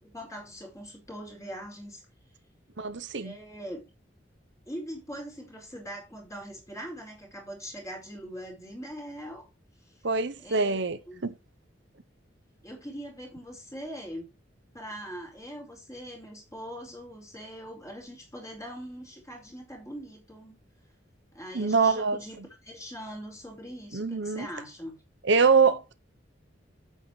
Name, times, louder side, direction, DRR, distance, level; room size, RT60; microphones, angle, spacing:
voice 1, 0.0-2.0 3.1-3.8 4.7-9.5 9.8-9.9 10.4-11.2 12.6-14.3 14.7-20.6 21.3-22.4 22.6-25.0, equal, 15° left, 4.7 m, -42 dB
voice 2, 2.8-3.3 10.0-11.3 21.5-22.2 23.9-24.5 25.2-25.9, right 4 dB, 65° right, 0.9 m, -24 dB
9.1 x 8.5 x 3.2 m
head